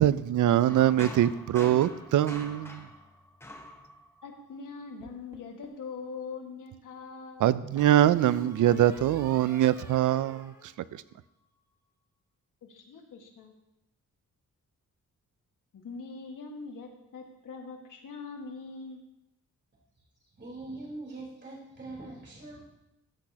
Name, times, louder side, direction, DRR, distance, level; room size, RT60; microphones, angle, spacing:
voice 1, 0.0-2.9 7.4-11.0, right 12 dB, 65° right, 16 dB, 0.5 m, -23 dB
sound 1, 0.7-4.5, left 1 dB, 10° left, 1.1 m, -44 dB
voice 2, 4.2-7.5 12.6-13.5 15.7-19.0, left 4 dB, 70° left, 2 dB, 1.8 m, -42 dB
sound 2, 5.0-5.9 7.7-11.4, equal, 10° right, 1.4 m, -47 dB
voice 3, 20.4-22.6, right 2 dB, 35° right, -4 dB, 4.0 m, -42 dB
15.0 x 8.1 x 2.9 m, 0.90 s
cardioid pair, 110°, 33 cm